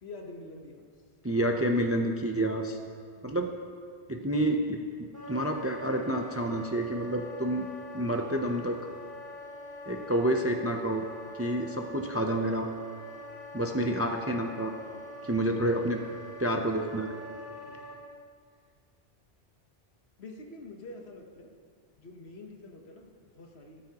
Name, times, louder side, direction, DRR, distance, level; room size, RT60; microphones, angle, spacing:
voice 1, 0.0-0.9 3.1-3.3 17.5-17.9 20.2-21.5 22.0-23.9, left 2 dB, 70° left, 2 dB, 1.4 m, -47 dB
voice 2, 1.2-2.8 3.2-3.5 4.1-7.7 7.9-8.8 9.9-11.1 11.4-12.7 13.5-14.7 15.2-16.0 16.4-17.1, right 1 dB, 20° right, 3 dB, 0.4 m, -29 dB
Wind instrument woodwind instrument, 5.1-18.0, left 1 dB, 45° left, 2.9 m, -44 dB
13.5 x 13.0 x 2.9 m, 2.1 s
omnidirectional pair, 1.1 m